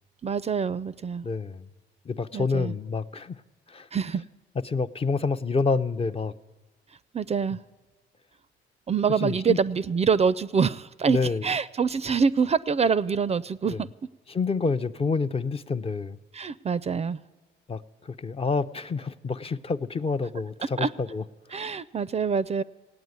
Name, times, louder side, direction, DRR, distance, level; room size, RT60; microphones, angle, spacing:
voice 1, 0.2-1.3 2.3-2.7 3.9-4.2 7.1-7.6 8.9-13.9 16.3-17.2 20.8-20.9 21.5-22.6, right 6 dB, 30° right, 17 dB, 0.4 m, -25 dB
voice 2, 1.2-1.7 2.1-3.4 3.7-3.9 4.7-6.3 9.2-9.6 11.1-11.4 13.7-13.8 14.3-16.2 17.7-17.8 18.2-21.2 21.5-21.6, left 4 dB, 30° left, 11 dB, 0.5 m, -28 dB
17.0 x 8.7 x 9.4 m, 1.2 s
cardioid pair, 90°, 20 cm